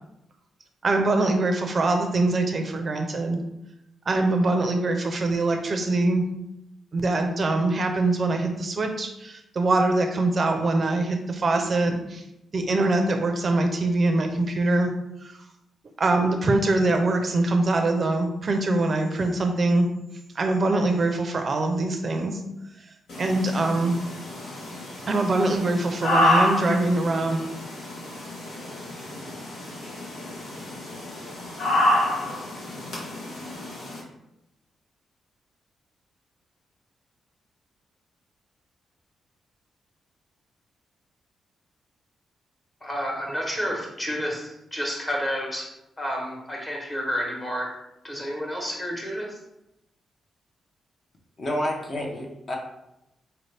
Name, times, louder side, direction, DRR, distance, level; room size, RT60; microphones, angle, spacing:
voice 1, 0.8-3.4 4.1-6.2 6.9-12.2 12.5-14.9 15.2-15.4 16.0-19.9 20.4-22.4 23.2-24.0 25.0-27.4, right 2 dB, 45° right, 4 dB, 0.4 m, -23 dB
sound 1, 23.1-34.0, left 1 dB, 85° left, 1.2 m, -28 dB
voice 2, 42.8-45.7 46.0-47.7 48.0-49.4, equal, 20° left, -1 dB, 1.1 m, -30 dB
voice 3, 51.4-52.6, left 1 dB, 40° left, 0 dB, 0.7 m, -29 dB
4.2 x 2.6 x 3.3 m, 0.87 s
cardioid pair, 115°, 0 cm